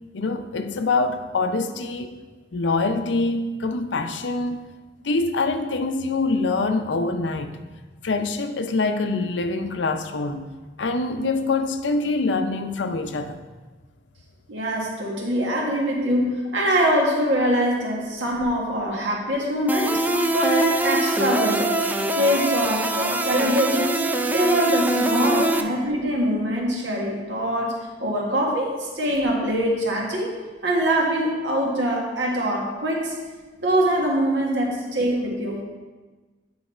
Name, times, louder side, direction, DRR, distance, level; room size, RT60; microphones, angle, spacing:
voice 1, 0.1-2.2 2.5-4.7 5.0-7.6 8.0-10.5 10.8-13.4, left 3 dB, 75° left, 8 dB, 0.5 m, -25 dB
voice 2, 14.5-20.0 20.3-21.8 22.1-30.3 30.6-33.1 33.6-35.6, equal, 80° right, -2 dB, 1.6 m, -23 dB
sound 1, 19.7-25.6, right 2 dB, 10° right, 0.3 m, -23 dB
8.8 x 4.0 x 4.3 m, 1.3 s
head